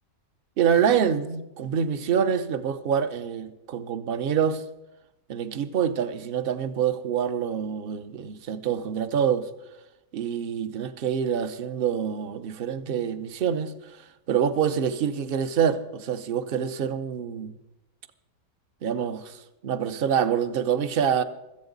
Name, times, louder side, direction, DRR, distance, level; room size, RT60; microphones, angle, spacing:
voice 1, 0.6-4.6 5.3-9.5 10.1-14.0 14.3-17.5 18.8-21.2, right 8 dB, 60° right, 0.6 m, -26 dB
16.0 x 14.0 x 3.9 m
omnidirectional pair, 1.8 m